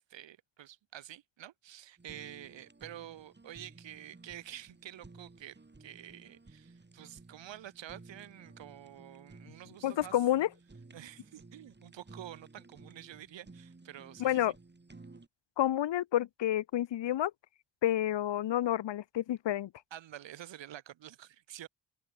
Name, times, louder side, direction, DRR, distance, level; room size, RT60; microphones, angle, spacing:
voice 1, 0.0-10.2 10.9-14.5 19.9-21.7, right 12 dB, 85° right, 2.8 m, -49 dB
Fire, 2.0-15.3, right 3 dB, 25° right, 7.9 m, -55 dB
voice 2, 9.8-10.5 14.2-14.5 15.6-17.3 17.8-19.7, left 12 dB, 75° left, 1.4 m, -29 dB
cardioid pair, 85°, 44 cm